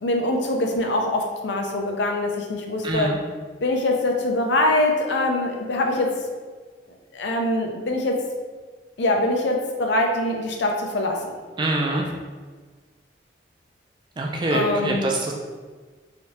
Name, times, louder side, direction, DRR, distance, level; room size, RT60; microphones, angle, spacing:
voice 1, 0.0-3.2 3.6-6.2 7.1-8.2 9.0-11.3 11.9-12.0 14.5-15.1, left 1 dB, 70° left, 2 dB, 0.5 m, -23 dB
voice 2, 2.8-3.2 11.6-12.0 14.2-15.3, right 2 dB, 25° right, 0 dB, 0.3 m, -24 dB
3.3 x 2.7 x 2.9 m, 1.4 s
head